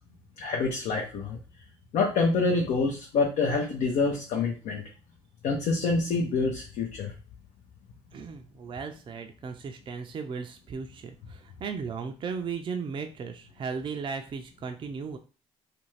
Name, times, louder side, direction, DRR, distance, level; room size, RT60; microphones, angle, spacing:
voice 1, 0.4-1.4 1.9-4.8 5.4-7.1, left 4 dB, 70° left, 0 dB, 0.6 m, -26 dB
voice 2, 8.1-15.2, right 5 dB, 40° right, 5 dB, 0.4 m, -36 dB
2.5 x 2.2 x 3.1 m, 0.36 s
supercardioid pair, 65°, 13 cm